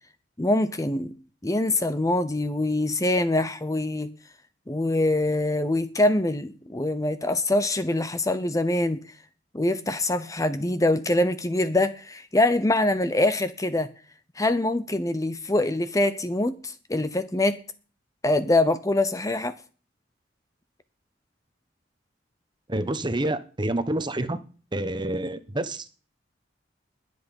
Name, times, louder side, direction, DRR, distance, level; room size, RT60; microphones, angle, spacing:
voice 1, 0.4-1.1 1.4-4.1 4.7-9.0 9.5-13.9 14.4-17.6 18.2-19.5, left 1 dB, 20° left, 0.8 m, -24 dB
voice 2, 22.7-24.4 24.7-25.9, right 1 dB, 25° right, 1.1 m, -28 dB
20.5 x 8.2 x 5.4 m
head